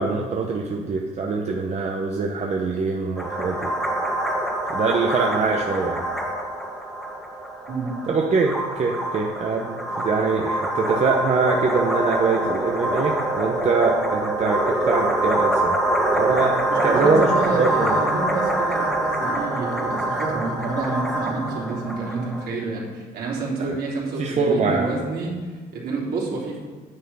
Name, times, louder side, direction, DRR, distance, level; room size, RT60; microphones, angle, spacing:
voice 1, 0.0-3.7 4.7-6.1 8.1-15.8 16.2-18.0 23.6-23.8 24.2-24.9, right 4 dB, 40° right, 0 dB, 1.0 m, -23 dB
sound 1, 3.2-22.5, right 1 dB, ahead, 1.8 m, -25 dB
voice 2, 16.7-26.6, right 3 dB, 65° right, -4 dB, 3.5 m, -28 dB
9.9 x 8.4 x 5.6 m, 1.4 s
cardioid pair, 110°, 17 cm